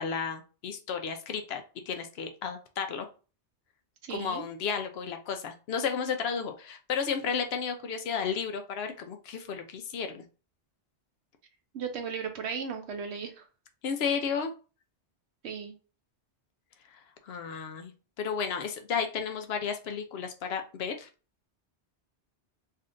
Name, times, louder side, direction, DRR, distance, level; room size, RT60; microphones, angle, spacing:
voice 1, 0.0-3.1 4.1-10.3 13.8-14.5 16.9-17.9 18.2-21.1, left 6 dB, 70° left, 6 dB, 0.8 m, -33 dB
voice 2, 4.0-4.4 11.7-13.4 15.4-15.7, right 6 dB, 75° right, 6 dB, 0.8 m, -36 dB
3.3 x 2.7 x 2.5 m, 0.35 s
omnidirectional pair, 1.2 m